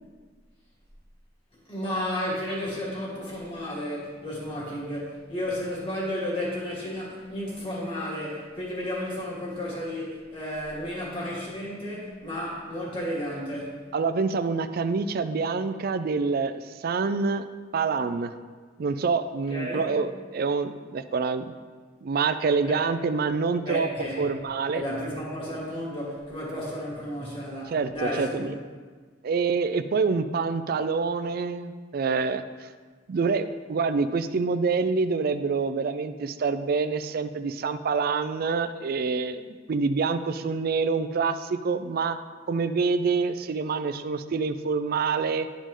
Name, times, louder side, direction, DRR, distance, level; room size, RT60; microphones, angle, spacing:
voice 1, 1.7-13.8 19.5-19.9 22.6-22.8 23.6-24.3 24.7-28.5, equal, 30° left, -6 dB, 2.5 m, -32 dB
voice 2, 13.9-17.4 17.7-18.3 18.8-21.5 22.0-23.9 24.2-24.8 27.7-28.5 29.2-32.7 33.1-42.2 42.5-45.5, right 4 dB, 55° right, 10 dB, 0.4 m, -26 dB
11.5 x 5.2 x 3.7 m, 1.5 s
head